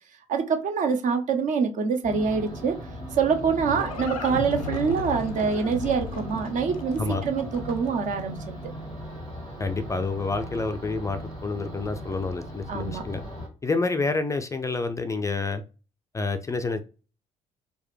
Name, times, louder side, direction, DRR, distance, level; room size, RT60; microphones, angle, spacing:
voice 1, 0.3-2.8 3.2-8.7 12.7-13.0, right 6 dB, 45° right, 0.7 m, -25 dB
sound 1, 2.0-13.5, equal, 85° right, 1.5 m, -38 dB
Livestock farm animals working animals, 3.0-8.1, left 6 dB, 80° left, 0.5 m, -36 dB
voice 2, 9.6-13.2 13.6-15.6 16.1-16.8, left 3 dB, 15° left, 0.4 m, -28 dB
4.5 x 2.2 x 3.2 m
figure-of-eight pair, 50°, 18 cm